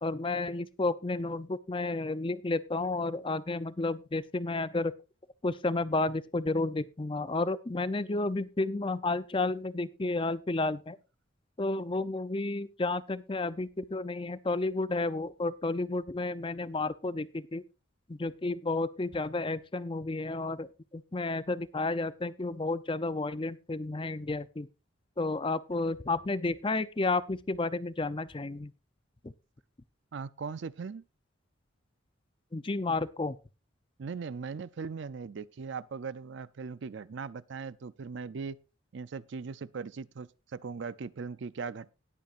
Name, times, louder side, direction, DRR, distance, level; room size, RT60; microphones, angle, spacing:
voice 1, 0.0-4.9 5.4-11.0 11.6-17.6 18.1-20.7 20.9-24.7 25.2-28.7 29.2-29.3 32.5-33.4, left 2 dB, 25° left, 0.5 m, -31 dB
voice 2, 30.1-31.0 34.0-38.6 38.9-41.9, right 5 dB, 60° right, 0.4 m, -39 dB
19.0 x 8.3 x 2.5 m
head